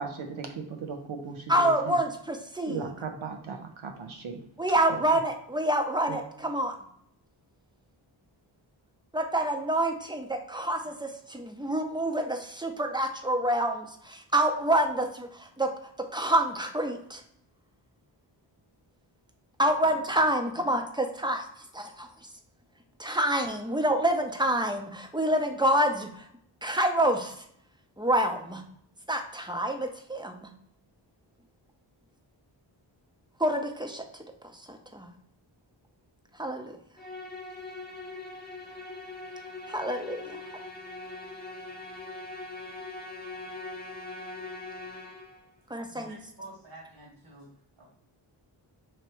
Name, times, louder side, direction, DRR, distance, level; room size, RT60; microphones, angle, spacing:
voice 1, 0.0-2.0 2.7-4.4 6.1-6.2, right 5 dB, 85° right, 4 dB, 0.8 m, -37 dB
voice 2, 1.5-2.9 4.6-6.8 9.1-15.7 16.0-17.2 19.6-20.8 21.2-21.4 21.7-22.1 23.0-26.1 26.6-27.3 28.0-28.6 29.1-30.5 33.4-34.0 34.7-35.1 36.4-36.8 39.7-40.2 45.7-46.2, right 1 dB, 10° right, 4 dB, 0.7 m, -27 dB
Musical instrument, 37.0-45.5, left 2 dB, 20° left, 0.9 m, -41 dB
voice 3, 45.9-47.5 47.8-47.9, right 2 dB, 60° right, -3 dB, 1.6 m, -47 dB
3.1 x 2.9 x 4.4 m, 0.69 s
cardioid pair, 50°, 48 cm